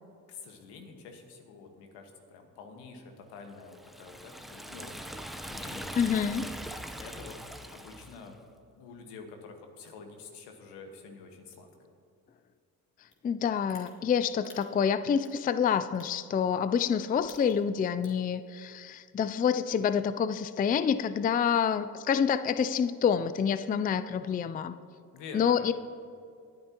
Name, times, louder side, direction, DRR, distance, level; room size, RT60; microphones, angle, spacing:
voice 1, 0.3-5.0 5.3-5.9 7.0-7.4 7.7-8.4 8.8-11.9 24.2-24.5 25.1-25.7, left 4 dB, 80° left, 4 dB, 1.6 m, -47 dB
Liquid, 3.7-8.3, equal, ahead, 0.9 m, -41 dB
voice 2, 5.9-6.5 13.2-24.7 25.3-25.7, left 7 dB, 20° left, 13 dB, 0.4 m, -27 dB
sound 1, 13.1-13.2 13.7-13.9 14.4-14.6 15.2-15.4 15.9-16.1 16.7-16.9 17.2-17.6 18.0-18.3, left 4 dB, 45° left, 2.8 m, -51 dB
20.0 x 9.4 x 3.0 m, 2.3 s
hypercardioid pair, 55°, 41 cm